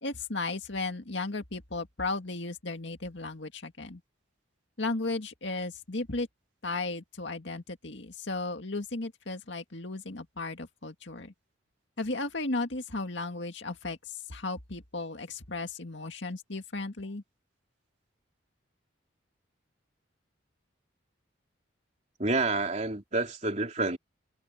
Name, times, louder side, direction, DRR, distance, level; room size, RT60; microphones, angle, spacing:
voice 1, 0.0-4.0 4.8-6.3 6.6-11.3 12.0-14.0 14.3-17.2, left 3 dB, 65° left, 2.1 m, -35 dB
voice 2, 22.2-24.0, right 3 dB, 35° right, 3.7 m, -28 dB
head